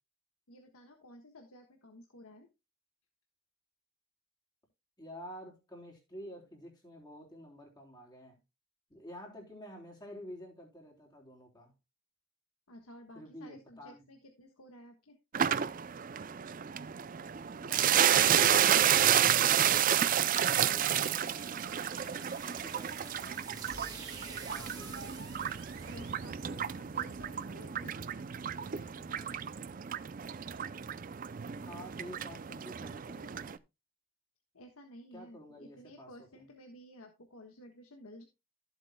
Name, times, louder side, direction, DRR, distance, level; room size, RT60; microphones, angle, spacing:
voice 1, 0.5-2.5 12.7-15.2 25.9-28.0 28.6-29.4 34.5-38.2, equal, 80° left, 1.4 m, -53 dB
voice 2, 5.0-8.4 8.9-11.7 13.1-14.0 17.6-19.6 20.5-21.5 22.4-23.9 24.2-25.2 31.7-33.6 35.1-36.4, equal, 20° left, 3.6 m, -50 dB
sound 1, 15.3-33.6, right 9 dB, 40° right, 0.4 m, -30 dB
sound 2, 20.4-26.9, right 4 dB, 15° right, 1.6 m, -50 dB
sound 3, 23.5-27.3, right 6 dB, 70° right, 3.1 m, -51 dB
14.5 x 8.1 x 2.2 m
head